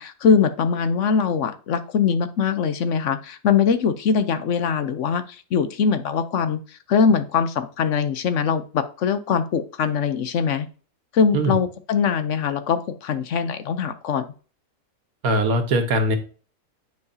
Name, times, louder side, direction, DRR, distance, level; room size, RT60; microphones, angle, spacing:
voice 1, 0.0-10.7 11.1-14.3, left 6 dB, 65° left, 11 dB, 0.9 m, -22 dB
voice 2, 15.2-16.2, right 1 dB, 90° right, 7 dB, 1.6 m, -21 dB
9.5 x 4.6 x 2.7 m, 0.38 s
omnidirectional pair, 1.5 m